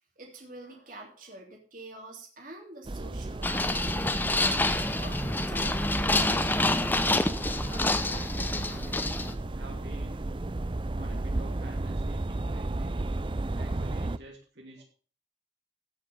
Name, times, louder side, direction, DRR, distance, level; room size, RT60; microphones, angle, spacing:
voice 1, 0.2-5.9 9.4-9.8, right 2 dB, 45° right, 0 dB, 3.2 m, -47 dB
sound 1, 2.8-14.2, right 2 dB, 25° right, 0.5 m, -33 dB
sound 2, 3.4-9.3, left 2 dB, 10° left, 0.8 m, -28 dB
voice 2, 7.4-9.0 9.5-10.3 10.9-13.0 13.5-14.9, right 1 dB, 65° right, 0 dB, 3.0 m, -49 dB
16.0 x 6.6 x 5.4 m, 0.40 s
head